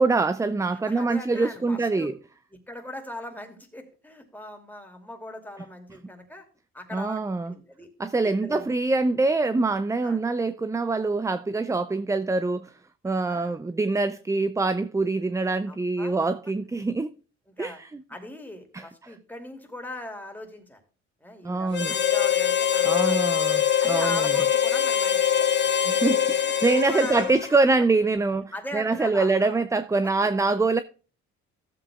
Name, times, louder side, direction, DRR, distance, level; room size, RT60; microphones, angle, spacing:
voice 1, 0.0-2.2 6.9-7.6 8.0-12.7 13.0-17.1 17.6-18.0 18.7-18.8 21.4-21.9 22.8-24.3 25.9-30.8, right 3 dB, 10° right, 0.4 m, -24 dB
voice 2, 0.7-2.1 2.5-6.4 6.7-7.2 7.5-7.9 8.2-8.7 10.0-10.2 13.0-13.6 15.7-16.2 17.5-17.8 18.1-20.8 21.2-23.3 23.8-25.5 26.1-27.3 28.5-29.6 30.0-30.1, left 1 dB, 5° left, 2.7 m, -40 dB
Harmonica, 21.7-27.7, left 9 dB, 35° left, 1.1 m, -23 dB
15.5 x 7.8 x 2.3 m
cardioid pair, 90°, 30 cm